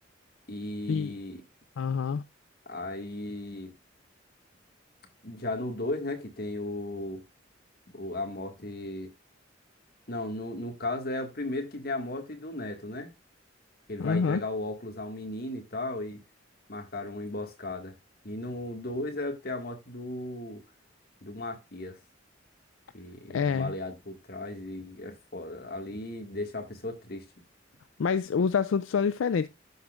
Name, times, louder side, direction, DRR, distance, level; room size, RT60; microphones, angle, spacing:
voice 1, 0.5-1.4 2.6-3.7 5.2-7.2 7.9-9.1 10.1-13.1 13.9-16.2 16.7-17.9 18.2-20.6 21.2-22.0 22.9-27.2, left 2 dB, 50° left, 1.8 m, -36 dB
voice 2, 1.8-2.2 14.0-14.4 23.3-23.7 28.0-29.5, left 6 dB, 80° left, 0.4 m, -26 dB
11.5 x 6.2 x 2.4 m
head